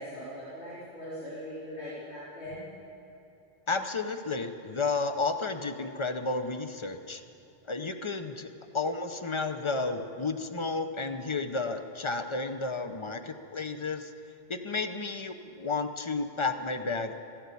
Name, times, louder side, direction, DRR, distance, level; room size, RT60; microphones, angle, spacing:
voice 1, 0.0-2.7, equal, 80° left, -12 dB, 3.8 m, -40 dB
voice 2, 3.7-7.2 7.7-8.5 8.7-14.1 14.5-17.1, left 3 dB, 30° left, 8 dB, 0.7 m, -32 dB
15.0 x 10.5 x 8.4 m, 2.9 s
omnidirectional pair, 1.1 m